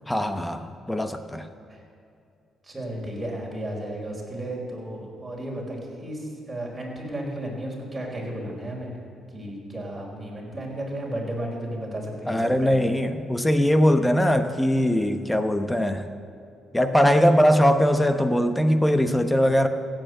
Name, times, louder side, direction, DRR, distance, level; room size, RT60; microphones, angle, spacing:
voice 1, 0.1-1.5 12.3-16.1 16.7-19.7, equal, 10° left, 8 dB, 0.9 m, -21 dB
voice 2, 2.6-9.0 9.3-12.9, right 1 dB, 15° right, -2 dB, 4.6 m, -33 dB
15.5 x 9.0 x 7.9 m, 2.4 s
cardioid pair, 90°, 0 cm